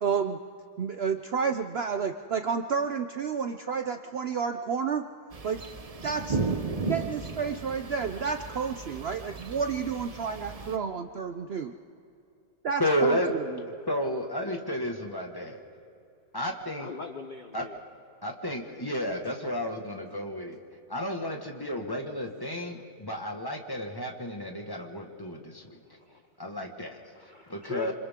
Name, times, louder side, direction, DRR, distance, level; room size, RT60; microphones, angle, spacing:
voice 1, 0.0-0.4 0.8-5.0 5.4-5.6 6.0-6.4 6.9-11.7 12.6-13.2, right 6 dB, 85° right, 7 dB, 0.5 m, -30 dB
sound 1, 5.3-10.8, right 4 dB, 40° right, 0.5 m, -35 dB
voice 2, 12.8-13.3 13.9-15.6 16.3-16.9 17.5-17.6 18.2-20.6 20.9-25.8 26.4-27.0 27.5-27.9, equal, 15° left, 2 dB, 1.5 m, -32 dB
voice 3, 16.8-17.8 22.7-22.8 25.8-26.2 27.0-27.9, left 4 dB, 50° left, 6 dB, 0.5 m, -41 dB
27.0 x 26.0 x 3.7 m, 2.6 s
omnidirectional pair, 1.9 m